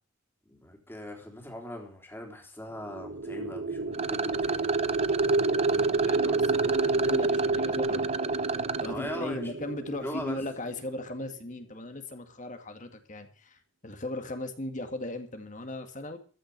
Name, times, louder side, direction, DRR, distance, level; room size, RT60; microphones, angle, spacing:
voice 1, 0.5-4.7 6.2-6.7 8.8-9.5 10.0-10.4, left 1 dB, 10° left, 1 dB, 3.6 m, -40 dB
sound 1, 2.9-11.0, right 3 dB, 55° right, 0.8 m, -29 dB
Rattle, 3.9-8.9, right 5 dB, 30° right, 0.6 m, -33 dB
voice 2, 5.7-8.0 8.8-16.2, left 1 dB, 40° left, 7 dB, 1.9 m, -38 dB
14.0 x 6.2 x 9.5 m, 0.41 s
head